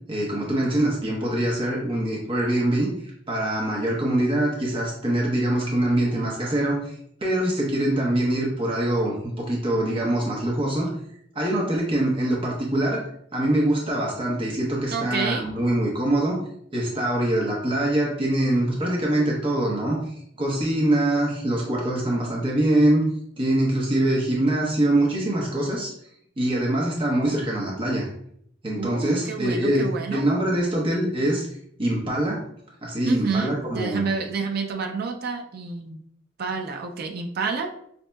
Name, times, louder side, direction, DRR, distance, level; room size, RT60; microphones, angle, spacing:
voice 1, 0.1-2.9 3.3-10.9 11.3-13.0 13.3-16.4 16.7-20.0 20.4-23.0 23.4-25.9 26.4-28.1 28.6-31.4 31.8-32.4 32.8-34.1, right 1 dB, 30° right, -3 dB, 0.8 m, -24 dB
voice 2, 14.9-15.5 28.8-30.2 33.1-36.0 36.4-37.7, right 4 dB, 55° right, 4 dB, 0.4 m, -29 dB
5.2 x 2.7 x 2.2 m, 0.68 s
head